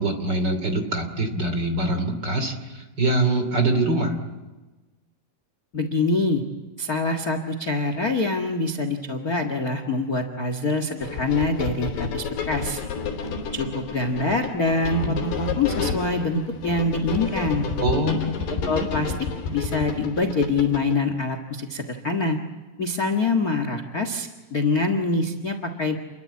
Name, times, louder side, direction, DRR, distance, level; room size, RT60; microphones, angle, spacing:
voice 1, 0.0-4.2 17.8-18.3, right 2 dB, 30° right, 7 dB, 3.0 m, -24 dB
voice 2, 5.7-6.4 6.8-12.8 13.5-17.7 18.6-19.1 19.5-22.4 22.8-26.0, left 3 dB, 55° left, 8 dB, 1.0 m, -25 dB
sound 1, 11.0-21.0, left 5 dB, 85° left, 5.3 m, -30 dB
29.5 x 23.0 x 8.7 m, 1.2 s
omnidirectional pair, 4.7 m